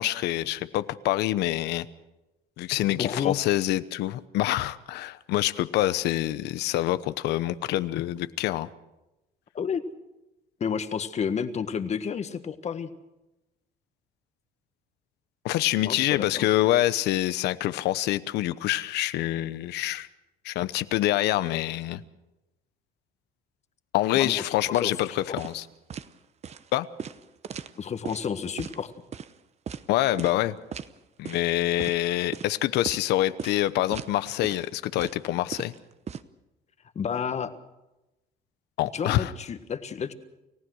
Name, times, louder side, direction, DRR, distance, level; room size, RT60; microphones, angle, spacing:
voice 1, 0.0-1.9 2.6-8.7 15.4-20.1 20.4-22.0 23.9-25.6 26.7-26.9 29.9-30.6 31.2-35.7 38.8-39.3, left 15 dB, 85° left, 14 dB, 0.9 m, -26 dB
voice 2, 3.0-3.4 9.5-9.8 10.6-12.9 15.8-16.5 24.1-24.9 25.3-25.4 27.8-28.9 36.9-37.5 38.9-40.1, left 7 dB, 40° left, 10 dB, 1.5 m, -31 dB
sound 1, 25.4-25.6 25.9-26.1 26.4-26.6 27.0-28.2 28.6-28.8 29.1-29.3 29.7-29.8 30.2-30.4 30.7-30.9 31.2-31.5 31.8-32.0 32.3-32.5 32.9-33.1 33.4-33.6 33.9-34.1 34.4-34.7 35.0-36.2, right 7 dB, 40° right, 0.9 m, -37 dB
29.5 x 15.5 x 6.3 m, 0.97 s
cardioid pair, 110°, 17 cm